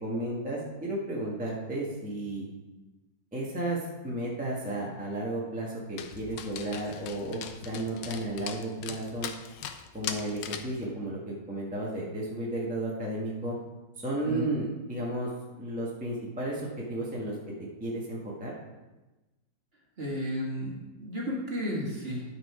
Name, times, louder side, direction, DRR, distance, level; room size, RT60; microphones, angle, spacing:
voice 1, 0.0-2.5 3.3-3.8 4.0-7.4 7.6-9.3 9.9-13.5 14.0-15.3 15.6-16.6 16.9-17.3 17.8-18.5, right 1 dB, 5° right, -4 dB, 1.4 m, -33 dB
Dog, 6.0-10.8, left 8 dB, 85° left, 1.3 m, -40 dB
voice 2, 20.0-22.2, equal, 35° right, -3 dB, 2.0 m, -33 dB
11.5 x 4.8 x 4.9 m, 1.1 s
omnidirectional pair, 1.9 m